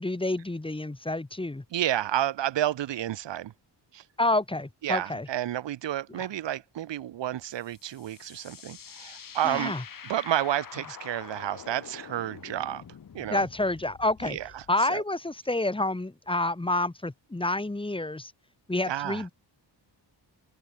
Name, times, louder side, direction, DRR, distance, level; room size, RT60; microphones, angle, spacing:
voice 1, 0.0-1.6 4.2-5.3 6.1-6.3 9.4-9.8 13.3-14.4 14.7-18.3 18.7-19.3, left 2 dB, 10° left, 2.4 m, -28 dB
voice 2, 1.7-3.5 3.9-4.0 4.8-9.7 10.0-12.8 13.1-13.4 14.2-14.6 14.9-15.0 18.9-19.2, right 12 dB, 85° right, 1.1 m, -30 dB
sound 1, 7.5-14.7, left 8 dB, 50° left, 1.8 m, -46 dB
open air
wide cardioid pair, 135°, 43 cm